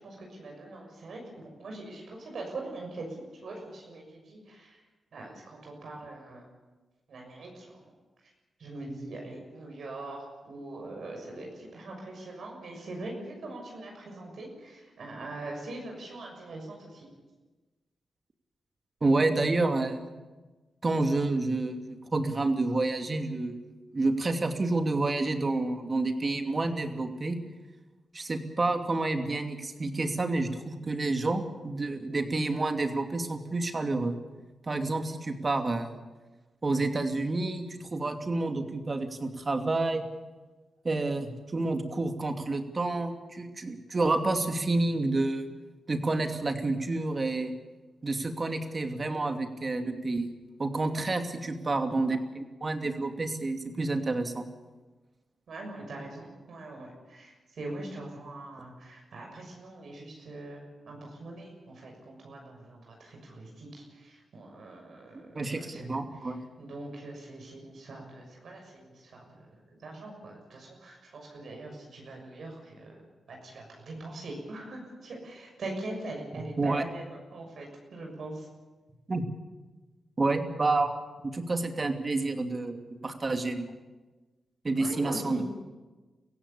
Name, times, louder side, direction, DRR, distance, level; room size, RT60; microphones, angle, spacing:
voice 1, 0.0-4.8 5.1-6.4 7.1-7.8 8.6-17.1 50.9-51.1 55.5-65.8 66.6-69.2 69.8-73.0 73.3-78.5 84.8-85.4, right 2 dB, 70° right, 0 dB, 6.6 m, -42 dB
voice 2, 19.0-20.1 20.8-23.6 23.9-27.4 28.1-34.2 34.7-36.0 36.6-40.0 40.8-45.4 45.9-47.5 48.0-50.3 50.6-54.5 65.3-66.4 76.3-76.8 79.1-79.2 80.2-81.0 81.2-83.7 84.6-85.4, right 2 dB, 40° right, 5 dB, 2.7 m, -29 dB
23.0 x 16.0 x 8.5 m, 1.2 s
cardioid pair, 60°, 0 cm